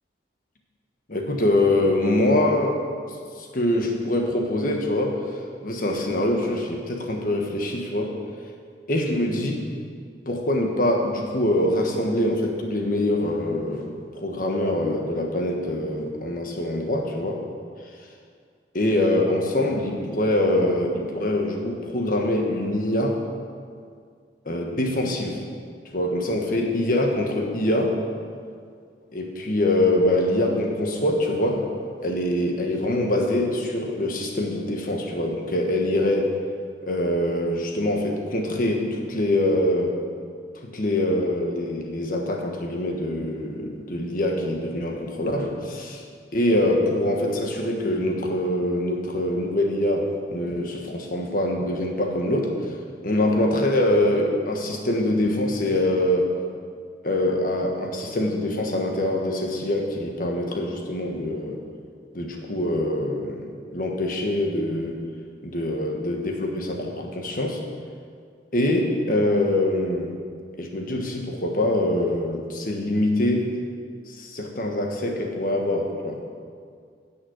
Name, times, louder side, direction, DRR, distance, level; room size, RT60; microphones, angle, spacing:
voice 1, 1.1-2.8 3.4-5.2 5.6-8.1 8.9-9.6 10.2-13.9 14.1-17.4 18.7-23.2 24.4-25.4 25.9-28.0 29.1-31.7 32.0-36.3 36.8-40.0 40.6-46.0 46.3-50.0 50.3-52.7 53.0-56.3 57.0-61.6 62.1-65.0 65.4-67.6 68.5-70.1 70.6-73.5 74.1-76.2, left 1 dB, 50° left, 1 dB, 1.4 m, -24 dB
10.5 x 6.1 x 8.0 m, 2.1 s
head